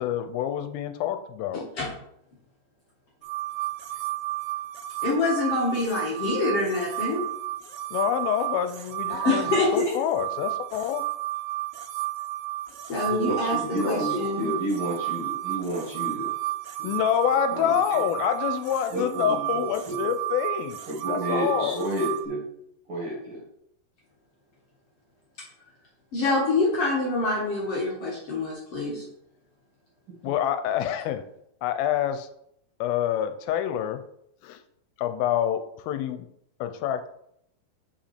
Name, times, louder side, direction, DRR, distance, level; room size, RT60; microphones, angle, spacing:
voice 1, 0.0-1.6 7.9-11.0 16.8-20.8 21.1-21.8 30.2-31.2 31.6-32.3 32.8-34.0 34.4-34.6 35.0-36.3 36.6-37.1, left 10 dB, 85° left, 9 dB, 2.4 m, -27 dB
voice 2, 1.5-1.9 5.0-7.2 9.1-9.9 12.9-13.6 13.9-14.4 21.6-21.7 26.1-29.0, left 2 dB, 55° left, -4 dB, 1.8 m, -26 dB
sound 1, 3.2-22.3, right 17 dB, 80° right, 2.3 m, -32 dB
voice 3, 13.0-16.3 16.8-17.0 17.5-18.2 18.9-20.0 20.9-22.4 22.9-23.4, right 1 dB, 45° right, -4 dB, 2.3 m, -31 dB
5.8 x 5.2 x 4.3 m, 0.74 s
omnidirectional pair, 4.2 m